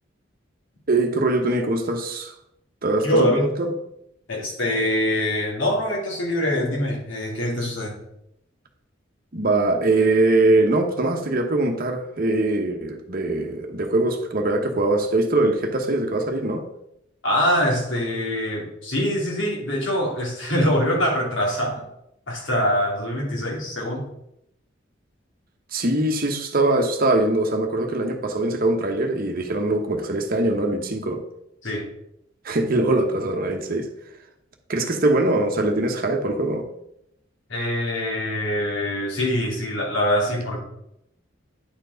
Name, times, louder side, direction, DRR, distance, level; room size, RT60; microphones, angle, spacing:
voice 1, 0.9-2.3 2.8-3.7 9.3-16.6 25.7-31.2 32.4-33.9 34.7-36.7, right 2 dB, 50° right, 4 dB, 1.0 m, -22 dB
voice 2, 3.0-3.5 4.3-8.0 17.2-21.8 22.3-24.0 31.6-31.9 37.5-40.6, left 1 dB, 70° left, -2 dB, 2.5 m, -24 dB
9.6 x 4.5 x 3.9 m, 0.79 s
head